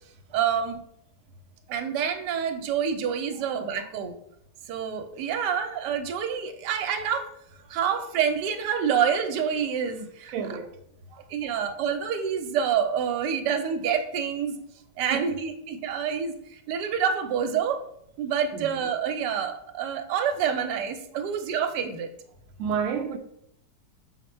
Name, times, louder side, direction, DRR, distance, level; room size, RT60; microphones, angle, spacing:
voice 1, 0.3-0.8 1.7-4.2 4.7-7.3 7.7-10.3 11.3-14.6 15.0-16.3 16.7-17.8 18.2-22.1, right 7 dB, 90° right, 1.2 m, -27 dB
voice 2, 10.3-10.8 11.1-11.3 15.1-15.4 18.5-18.7 22.6-23.2, right 7 dB, 70° right, 0.8 m, -30 dB
5.5 x 2.1 x 4.2 m
omnidirectional pair, 1.8 m